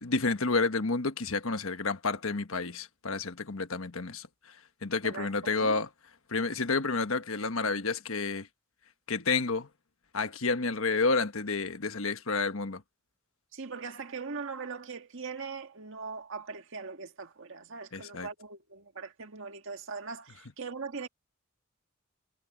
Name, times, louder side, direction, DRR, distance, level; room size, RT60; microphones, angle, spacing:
voice 1, 0.0-4.3 4.8-5.9 6.3-8.5 9.1-9.7 10.1-12.8 17.9-18.3, left 3 dB, 65° left, 1.4 m, -30 dB
voice 2, 5.0-5.8 13.5-21.1, right 4 dB, 65° right, 1.8 m, -40 dB
head